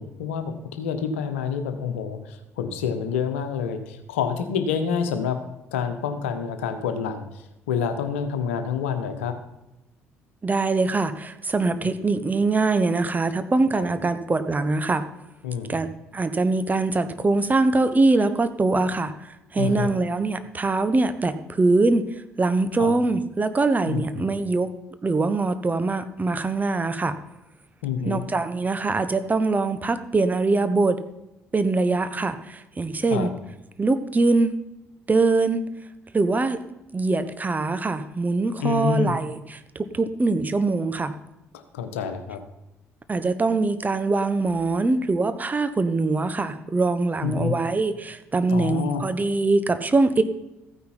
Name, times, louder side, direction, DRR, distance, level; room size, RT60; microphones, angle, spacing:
voice 1, 0.0-5.4 5.7-9.3 11.8-11.9 13.7-13.8 15.4-15.8 19.6-19.9 22.8-22.9 23.9-24.2 27.8-28.2 33.1-33.3 38.6-39.1 41.5-42.4 47.2-47.5 48.5-49.1, left 7 dB, 75° left, 8 dB, 1.1 m, -28 dB
voice 2, 10.4-15.1 15.7-22.1 22.4-24.7 25.0-27.2 28.0-31.0 31.5-33.3 33.8-34.5 35.1-35.6 36.1-36.6 36.9-41.1 43.1-50.2, right 3 dB, 25° right, 10 dB, 1.1 m, -23 dB
14.5 x 9.5 x 4.4 m, 0.92 s
figure-of-eight pair, 50°, 7 cm